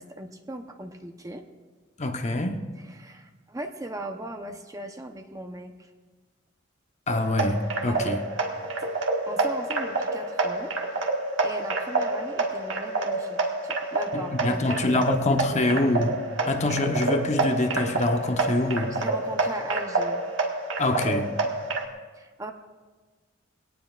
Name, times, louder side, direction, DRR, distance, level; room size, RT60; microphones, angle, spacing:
voice 1, 0.0-1.5 2.8-5.9 7.8-8.2 8.8-8.9 9.3-10.7 11.4-15.0 15.5-16.0 18.9-20.2 22.1-22.5, right 1 dB, 15° right, 0.8 m, -38 dB
voice 2, 2.0-2.6 7.1-8.2 14.1-16.2 16.5-19.0 20.8-21.3, left 2 dB, 35° left, 0.9 m, -25 dB
sound 1, 7.1-21.8, right 3 dB, 70° right, 1.6 m, -28 dB
21.5 x 18.0 x 2.5 m
head